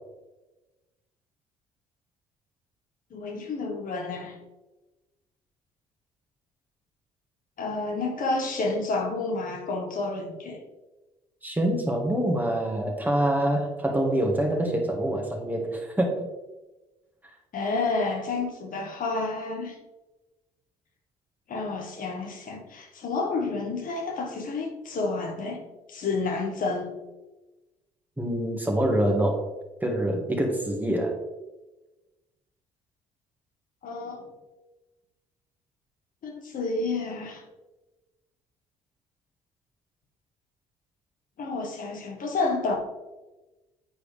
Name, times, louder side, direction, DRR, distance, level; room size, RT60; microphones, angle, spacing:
voice 1, 3.1-4.3 7.6-10.6 17.5-19.7 21.5-27.0 33.8-34.2 36.2-37.4 41.4-42.8, left 3 dB, 55° left, 2 dB, 1.6 m, -30 dB
voice 2, 11.4-16.3 28.2-29.5 29.8-31.2, right 1 dB, 10° right, 1 dB, 1.8 m, -25 dB
9.3 x 4.6 x 3.5 m, 1.1 s
hypercardioid pair, 55°, 17 cm